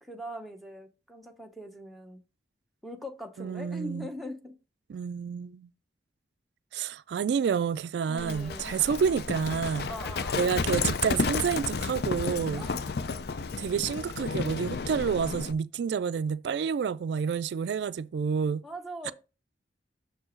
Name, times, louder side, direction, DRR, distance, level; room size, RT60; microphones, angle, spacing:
voice 1, 0.0-2.2 2.8-4.5 8.1-8.7 9.9-10.5 12.5-12.8 18.6-19.1, equal, ahead, 0.7 m, -41 dB
voice 2, 3.4-4.1 4.9-5.7 6.7-9.9 10.4-12.7 13.6-18.6 19.1-19.2, right 6 dB, 75° right, 0.3 m, -29 dB
Livestock farm animals working animals, 8.2-15.5, left 4 dB, 65° left, 0.4 m, -32 dB
6.7 x 4.5 x 4.3 m
head